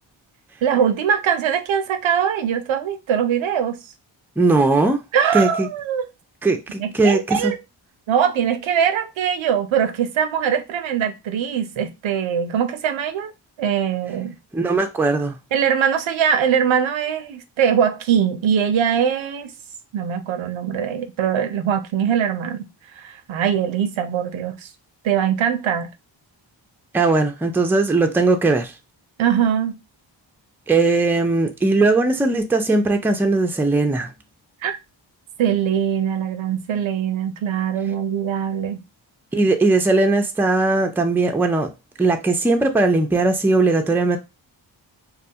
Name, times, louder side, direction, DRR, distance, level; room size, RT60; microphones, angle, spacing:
voice 1, 0.6-3.8 5.1-6.1 6.8-7.6 8.1-13.3 13.6-14.4 15.5-19.5 19.9-22.7 23.0-24.7 25.0-25.9 29.2-29.7 34.6-34.8 35.4-38.8, right 8 dB, 70° right, 0.6 m, -22 dB
voice 2, 4.4-5.0 5.3-5.7 6.4-7.5 14.5-15.4 26.9-28.7 30.7-34.1 39.3-41.7 42.0-44.2, right 3 dB, 5° right, 0.4 m, -19 dB
2.3 x 2.2 x 2.7 m
cardioid pair, 45°, 48 cm